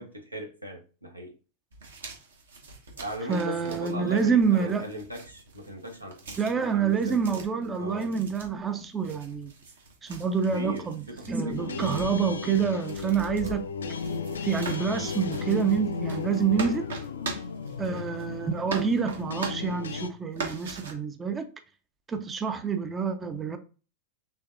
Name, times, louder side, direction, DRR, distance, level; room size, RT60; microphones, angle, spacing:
voice 1, 0.0-1.3 3.0-7.4 7.8-8.1 10.5-11.9 13.4-13.6 17.8-18.1, equal, 85° right, 0.9 m, -38 dB
sound 1, 1.7-18.4 18.7-20.0 20.3-20.9, right 4 dB, 70° right, 1.2 m, -42 dB
voice 2, 3.3-4.9 6.4-9.5 10.1-13.6 14.4-16.9 17.8-21.4 22.1-23.6, right 6 dB, 20° right, 0.5 m, -27 dB
sound 2, 11.5-20.1, left 5 dB, 70° left, 0.4 m, -34 dB
5.6 x 3.3 x 2.5 m
figure-of-eight pair, 90°, 0 cm